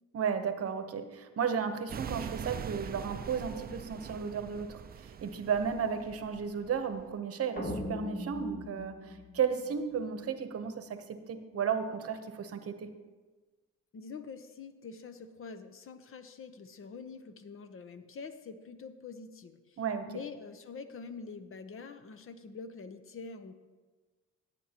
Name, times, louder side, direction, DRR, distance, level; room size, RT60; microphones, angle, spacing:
voice 1, 0.1-12.9 19.8-20.1, right 7 dB, 50° right, 9 dB, 0.9 m, -34 dB
sound 1, 1.9-7.1, right 7 dB, 30° right, 0.4 m, -43 dB
sound 2, 7.6-10.0, left 1 dB, 30° left, 1.2 m, -40 dB
voice 2, 13.9-19.8 20.1-23.5, left 5 dB, 45° left, 10 dB, 0.7 m, -45 dB
15.0 x 8.3 x 2.9 m, 1.3 s
cardioid pair, 90°, 30 cm